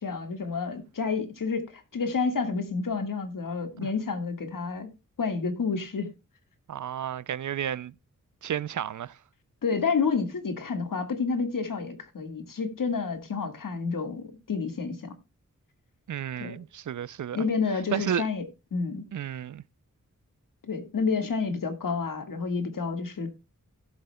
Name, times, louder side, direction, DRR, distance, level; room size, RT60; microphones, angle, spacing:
voice 1, 0.0-4.9 5.2-6.1 9.6-15.1 16.4-16.6 17.3-18.4 18.7-19.0 20.7-23.3, left 5 dB, 90° left, 1.8 m, -29 dB
voice 2, 6.7-7.9 8.4-9.2 16.1-17.4 17.9-18.2 19.1-19.6, right 9 dB, 65° right, 0.5 m, -32 dB
17.5 x 7.9 x 2.2 m
wide cardioid pair, 105°, 32 cm